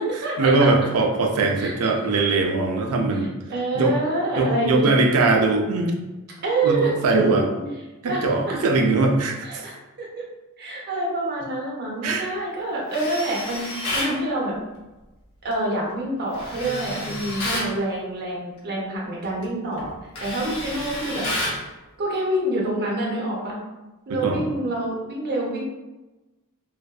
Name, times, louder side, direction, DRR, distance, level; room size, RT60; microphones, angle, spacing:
voice 1, 0.4-3.3 3.7-3.9 4.4-6.0 6.6-7.5 8.0-9.7 12.0-12.3 24.1-24.4, right 3 dB, 90° right, 3 dB, 0.4 m, -21 dB
voice 2, 3.2-4.9 6.4-7.6 8.0-8.2 8.5-8.6 9.4-9.7 10.0-10.1 10.6-14.5 15.4-19.9 20.2-21.3 22.0-23.6 24.1-25.6, right 2 dB, 50° right, -4 dB, 0.7 m, -27 dB
Tools, 12.9-14.2 16.3-17.7 19.2-19.4 19.8-21.6, left 1 dB, 75° left, 0.7 m, -30 dB
2.5 x 2.2 x 2.3 m, 1.1 s
head